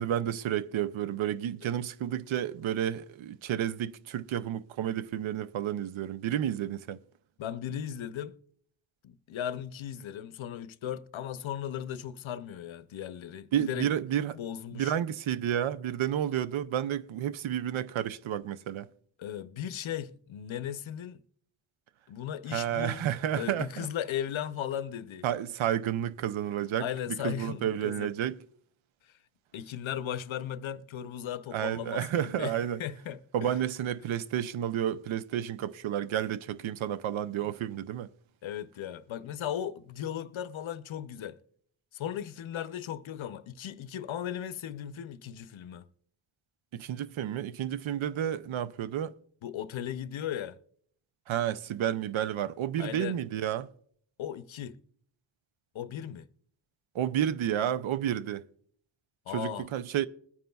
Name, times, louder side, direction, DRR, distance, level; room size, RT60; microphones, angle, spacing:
voice 1, 0.0-7.0 13.5-14.4 14.7-18.9 22.5-23.9 25.2-26.9 27.2-28.4 31.5-32.8 33.3-38.1 46.7-49.1 51.3-53.7 56.9-58.4 59.3-60.1, right 10 dB, 85° right, 0.6 m, -31 dB
voice 2, 7.4-8.4 9.0-13.9 14.3-14.9 19.2-21.2 22.1-23.1 23.4-25.3 26.8-28.1 29.5-33.6 38.4-41.4 41.9-45.8 49.4-50.6 52.8-53.2 54.2-54.8 55.7-56.3 59.3-59.7, left 10 dB, 85° left, 0.7 m, -37 dB
21.0 x 9.3 x 2.3 m
wide cardioid pair, 115°, 46 cm